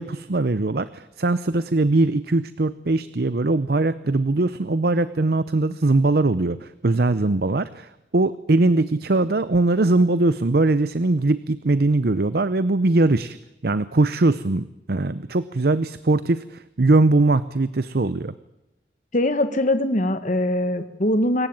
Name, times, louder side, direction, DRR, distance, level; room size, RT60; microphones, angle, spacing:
voice 1, 0.0-13.4 13.6-18.3, right 2 dB, 55° right, 15 dB, 0.7 m, -21 dB
voice 2, 19.1-21.5, left 1 dB, 45° left, 10 dB, 1.5 m, -22 dB
25.5 x 15.0 x 8.8 m, 0.95 s
head